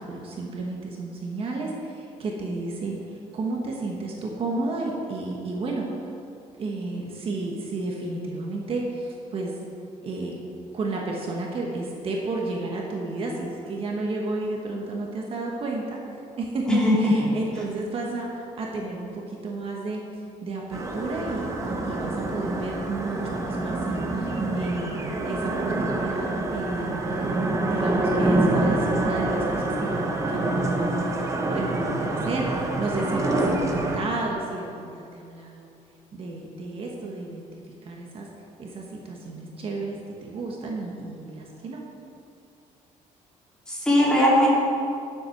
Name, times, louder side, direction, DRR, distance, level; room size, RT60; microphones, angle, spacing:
voice 1, 0.0-3.0 3.3-6.1 6.6-9.6 10.0-10.3 10.7-16.0 16.4-20.0 20.4-35.7 36.1-38.3 38.6-41.8, right 2 dB, 40° right, -1 dB, 1.4 m, -32 dB
voice 2, 16.7-17.3 43.7-44.5, left 1 dB, 5° left, -6 dB, 2.6 m, -19 dB
sound 1, 20.7-34.0, right 2 dB, 20° right, 1.0 m, -26 dB
10.0 x 7.4 x 6.0 m, 2.6 s
cardioid pair, 150°, 14 cm